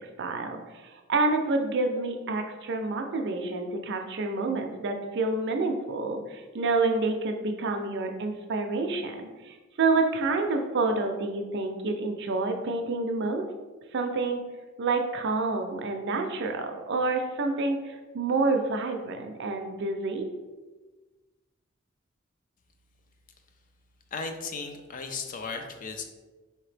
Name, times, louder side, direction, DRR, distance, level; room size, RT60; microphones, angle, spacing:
voice 1, 0.2-13.5 13.9-14.5 14.8-20.3, right 3 dB, 60° right, 4 dB, 0.5 m, -28 dB
voice 2, 24.1-26.0, left 4 dB, 40° left, 5 dB, 0.5 m, -35 dB
4.5 x 2.8 x 3.3 m, 1.2 s
head